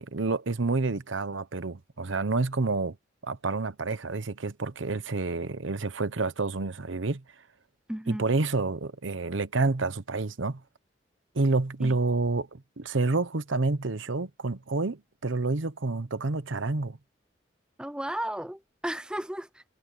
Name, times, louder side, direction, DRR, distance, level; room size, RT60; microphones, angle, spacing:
voice 1, 0.0-3.0 3.2-7.2 8.1-10.6 11.3-17.0, right 3 dB, 90° right, 1.0 m, -29 dB
voice 2, 7.9-8.2 11.8-12.0 17.8-19.6, right 1 dB, 5° right, 0.5 m, -34 dB
head